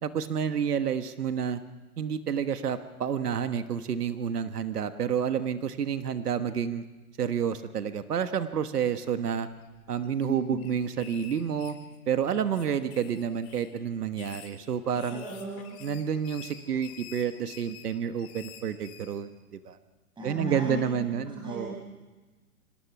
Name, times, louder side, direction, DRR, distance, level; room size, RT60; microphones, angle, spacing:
voice 1, 0.0-1.6 2.0-6.8 7.2-9.5 9.9-11.8 12.1-15.2 15.8-19.8 20.2-21.7, right 8 dB, 85° right, 10 dB, 1.4 m, -29 dB
sound 1, 9.6-10.3 10.6-12.2 12.5-13.7 14.1-19.1, left 10 dB, 45° left, 4.6 m, -49 dB
voice 2, 10.2-10.6 15.1-15.7 20.2-21.8, equal, 10° right, -3 dB, 5.7 m, -37 dB
25.5 x 18.5 x 6.0 m, 1.2 s
hypercardioid pair, 135°, 45 cm